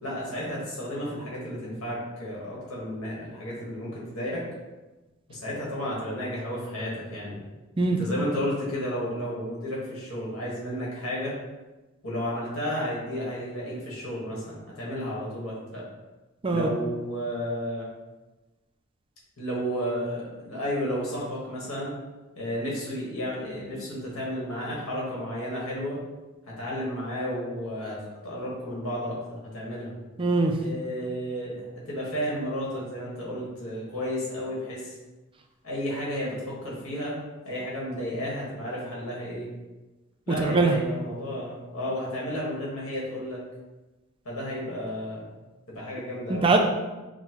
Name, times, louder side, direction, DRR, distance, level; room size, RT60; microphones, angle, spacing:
voice 1, 0.0-4.4 5.3-7.4 8.0-11.3 12.0-15.8 16.5-17.9 19.4-21.9 22.3-26.0 26.5-28.0 28.2-30.0 30.6-35.0 35.6-37.1 37.4-39.5 40.3-43.4 44.2-45.2 45.7-46.5, equal, 80° left, -5 dB, 1.4 m, -32 dB
voice 2, 30.2-30.5 40.4-40.7 46.3-46.6, right 3 dB, 25° right, 3 dB, 0.3 m, -21 dB
5.5 x 2.1 x 2.9 m, 1.1 s
head